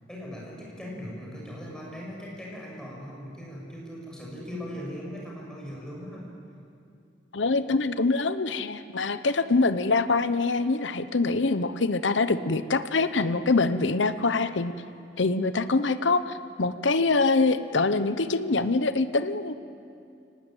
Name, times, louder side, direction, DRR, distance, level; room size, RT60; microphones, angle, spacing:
voice 1, 0.1-6.3, equal, 5° left, -4 dB, 6.5 m, -39 dB
voice 2, 7.3-14.7 15.2-19.5, left 3 dB, 80° left, 12 dB, 0.9 m, -24 dB
24.0 x 19.0 x 9.1 m, 2.5 s
head